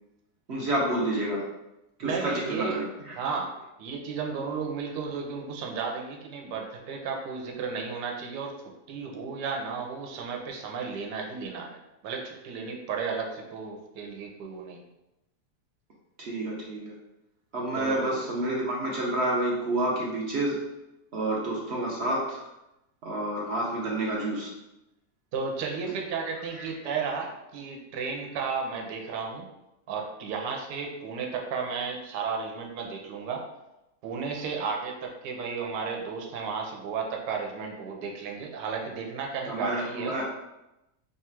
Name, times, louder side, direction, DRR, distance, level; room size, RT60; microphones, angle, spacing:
voice 1, 0.5-1.4 2.0-3.1 16.2-16.9 17.5-20.7 21.1-22.4 23.0-24.5 26.6-26.7 39.5-40.2, right 1 dB, 60° right, -3 dB, 0.7 m, -29 dB
voice 2, 2.0-2.8 3.2-3.5 3.8-8.6 8.9-14.8 17.7-18.2 25.3-29.5 29.9-33.4 34.0-40.2, right 5 dB, 80° right, 1 dB, 1.2 m, -33 dB
3.2 x 2.3 x 4.3 m, 0.92 s
omnidirectional pair, 1.9 m